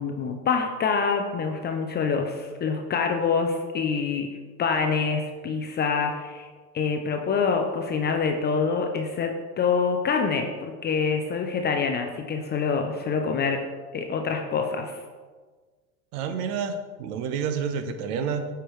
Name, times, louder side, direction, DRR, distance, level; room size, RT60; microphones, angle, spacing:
voice 1, 0.0-4.3 4.6-6.5 6.7-13.6 13.9-15.0, left 5 dB, 25° left, 4 dB, 0.4 m, -26 dB
voice 2, 16.1-18.5, right 6 dB, 65° right, 8 dB, 0.9 m, -29 dB
7.9 x 4.7 x 3.1 m, 1.4 s
hypercardioid pair, 105°, 48 cm